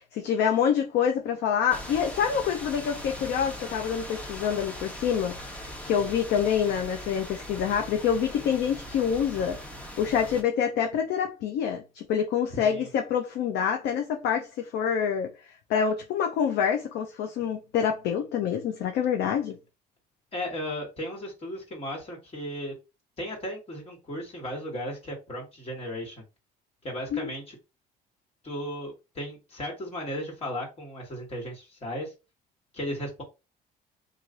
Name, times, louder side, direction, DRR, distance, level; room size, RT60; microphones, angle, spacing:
voice 1, 0.1-19.5 27.1-27.3, left 8 dB, 75° left, 0.6 m, -27 dB
sound 1, 1.7-10.4, equal, 10° left, 0.9 m, -40 dB
voice 2, 12.5-12.9 20.3-22.7 23.2-26.2 26.8-27.6 28.4-32.1 32.7-33.2, equal, 35° left, 1.6 m, -35 dB
3.2 x 2.5 x 3.8 m
cardioid pair, 110°, 17 cm